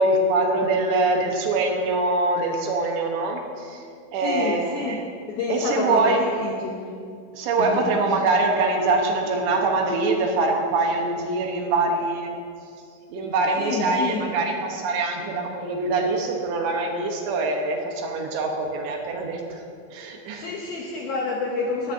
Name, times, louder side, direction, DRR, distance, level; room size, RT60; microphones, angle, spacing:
voice 1, 0.0-3.8 4.1-5.0 5.5-6.2 7.3-12.3 13.1-19.6 19.9-20.4, right 3 dB, 75° right, 2 dB, 3.1 m, -24 dB
voice 2, 4.2-5.0 5.3-6.8 7.6-8.2 13.6-14.3 20.4-21.9, left 4 dB, 80° left, -1 dB, 2.2 m, -28 dB
19.0 x 13.0 x 2.7 m, 2.4 s
omnidirectional pair, 5.5 m